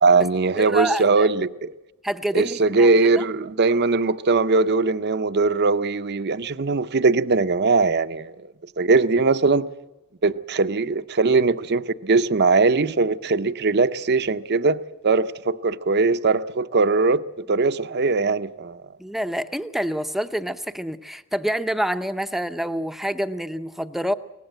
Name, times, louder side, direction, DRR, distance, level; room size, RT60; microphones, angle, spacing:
voice 1, 0.0-1.7 2.3-9.7 10.2-18.8, right 3 dB, 50° right, 0.7 m, -20 dB
voice 2, 0.6-1.3 2.0-3.2 19.0-24.1, right 1 dB, ahead, 0.6 m, -27 dB
23.0 x 18.5 x 7.7 m
head